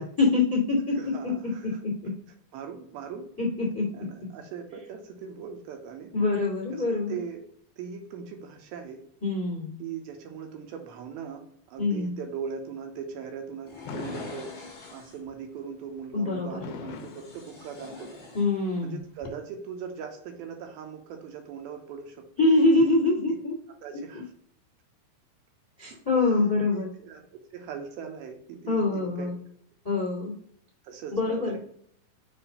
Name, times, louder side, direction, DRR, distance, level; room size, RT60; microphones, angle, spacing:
voice 1, 0.0-1.0 1.2-2.1 3.4-4.1 6.1-7.2 9.2-9.8 11.8-12.2 16.1-16.6 18.3-19.0 22.4-23.6 24.1-24.2 25.8-26.9 28.7-29.3 29.8-30.3 31.1-31.6, left 3 dB, 15° left, -3 dB, 0.7 m, -25 dB
voice 2, 0.9-1.7 2.5-3.3 3.9-6.1 6.7-7.5 7.8-9.0 9.8-14.5 14.9-18.2 18.8-22.5 23.8-24.3 26.3-26.4 26.7-29.3 30.8-31.6, right 6 dB, 80° right, 4 dB, 2.5 m, -40 dB
sound 1, 13.7-15.3 16.9-18.8 19.1-19.3, left 4 dB, 40° left, 1.2 m, -45 dB
Fireworks, 13.9-15.2 16.6-18.2, left 6 dB, 80° left, 2.3 m, -41 dB
7.0 x 2.6 x 5.5 m, 0.65 s
omnidirectional pair, 4.6 m